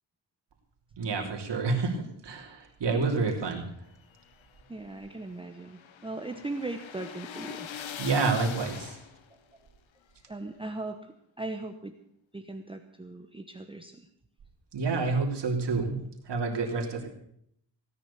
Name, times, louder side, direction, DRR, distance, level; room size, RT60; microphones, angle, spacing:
voice 1, 1.0-3.6 8.0-9.0 14.7-16.0 16.3-17.1, right 4 dB, 65° right, 1 dB, 3.2 m, -28 dB
sound 1, 3.9-9.4, left 8 dB, 80° left, 1.4 m, -42 dB
voice 2, 4.7-7.7 9.3-9.4 10.3-12.0 12.3-14.1, right 2 dB, 10° right, 5 dB, 0.9 m, -39 dB
17.0 x 10.0 x 7.0 m, 0.71 s
wide cardioid pair, 125°, 45 cm